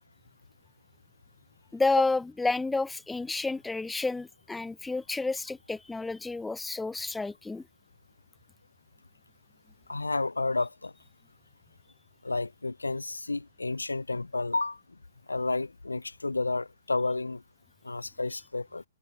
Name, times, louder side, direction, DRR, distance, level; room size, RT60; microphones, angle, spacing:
voice 1, 1.7-7.6, left 3 dB, 5° left, 0.8 m, -30 dB
voice 2, 9.9-10.9 12.2-14.8 15.3-17.4 17.8-18.8, left 3 dB, 85° left, 0.3 m, -31 dB
figure-of-eight pair, 120°, 0 cm